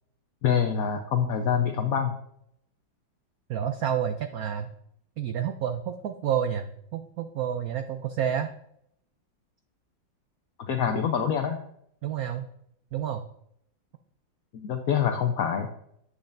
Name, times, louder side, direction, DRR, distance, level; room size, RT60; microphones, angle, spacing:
voice 1, 0.4-2.1 10.6-11.6 14.5-15.7, left 7 dB, 65° left, 4 dB, 0.9 m, -25 dB
voice 2, 3.5-4.7 5.2-8.5 12.0-12.5 12.9-13.2, right 9 dB, 85° right, 7 dB, 0.8 m, -29 dB
9.6 x 8.7 x 2.6 m, 0.72 s
omnidirectional pair, 2.2 m